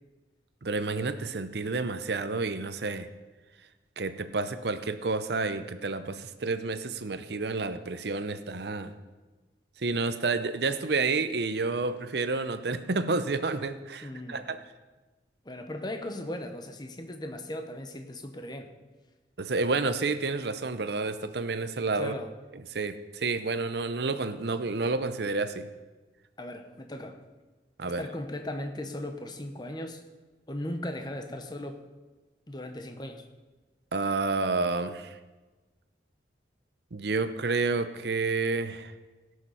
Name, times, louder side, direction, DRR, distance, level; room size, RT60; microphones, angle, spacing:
voice 1, 0.6-3.1 4.0-8.9 9.8-14.6 19.4-22.1 22.7-25.7 27.8-28.0 33.9-35.2 36.9-38.9, right 3 dB, 60° right, 11 dB, 0.7 m, -30 dB
voice 2, 14.0-14.5 15.4-18.7 21.9-22.3 26.4-27.2 27.8-30.0 30.5-31.8 32.5-33.2, left 1 dB, 25° left, 6 dB, 0.9 m, -37 dB
17.0 x 6.6 x 5.6 m, 1.2 s
head